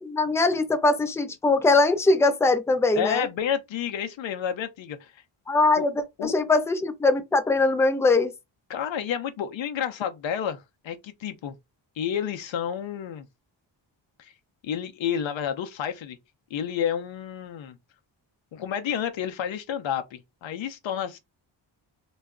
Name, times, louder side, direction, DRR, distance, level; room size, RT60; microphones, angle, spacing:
voice 1, 0.0-3.3 5.5-8.3, left 3 dB, 5° left, 0.4 m, -22 dB
voice 2, 2.9-5.2 5.8-5.9 6.2-6.3 8.7-11.5 12.0-13.3 14.2-14.3 14.6-16.2 16.5-17.8 18.5-21.2, left 8 dB, 70° left, 0.6 m, -30 dB
2.3 x 2.0 x 3.5 m
cardioid pair, 85°, 47 cm